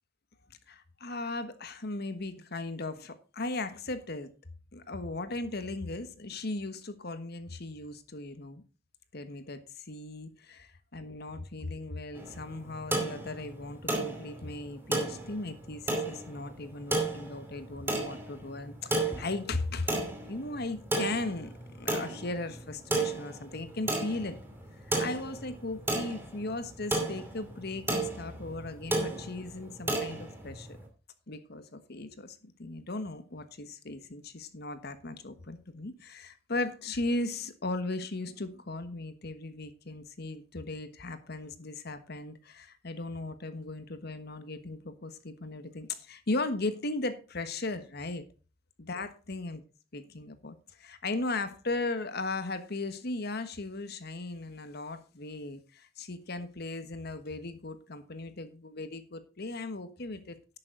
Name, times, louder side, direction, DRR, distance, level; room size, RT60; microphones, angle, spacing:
voice 1, 0.7-4.3 4.7-8.6 9.1-20.0 20.2-24.4 24.8-30.8 31.3-48.2 48.8-49.6 49.9-60.4, left 2 dB, 55° left, 10 dB, 1.3 m, -37 dB
sound 1, 12.1-30.8, right 2 dB, 10° right, 2.6 m, -34 dB
11.0 x 8.8 x 3.8 m, 0.33 s
head